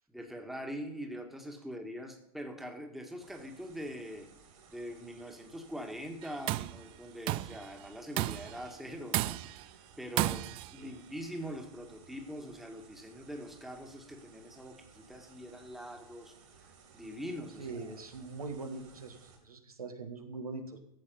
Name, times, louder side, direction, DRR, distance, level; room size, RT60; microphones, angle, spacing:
voice 1, 0.1-4.3 4.7-9.6 10.0-16.3 16.9-17.9, equal, ahead, 3 dB, 1.8 m, -43 dB
sound 1, 3.2-19.4, right 5 dB, 55° right, 3.6 m, -59 dB
Tools, 6.2-6.8 7.3-7.6 8.2-8.6 9.1-9.6 10.2-10.7, right 17 dB, 30° right, 0.3 m, -32 dB
voice 2, 17.6-20.8, right 3 dB, 80° right, 4 dB, 1.8 m, -42 dB
14.5 x 8.2 x 5.4 m, 0.81 s
figure-of-eight pair, 95°, 19 cm